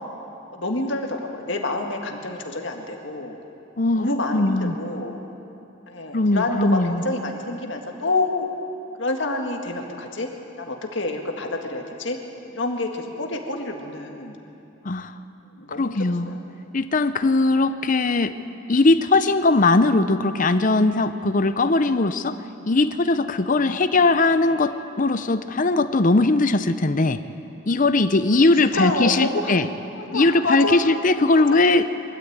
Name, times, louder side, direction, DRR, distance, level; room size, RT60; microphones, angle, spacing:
voice 1, 0.5-3.4 4.0-5.2 5.9-8.5 9.0-10.3 10.6-12.2 12.5-14.4 15.5-16.0 16.3-16.4 23.6-23.8 28.7-29.5 29.9-30.9 31.3-31.4, left 2 dB, 60° left, 2 dB, 1.8 m, -28 dB
voice 2, 3.8-4.8 6.1-7.0 14.8-15.1 15.8-16.4 16.7-18.3 18.7-22.4 22.6-27.2 27.6-29.7 30.1-31.9, left 2 dB, 40° left, 11 dB, 0.7 m, -20 dB
22.5 x 13.0 x 8.7 m, 2.9 s
head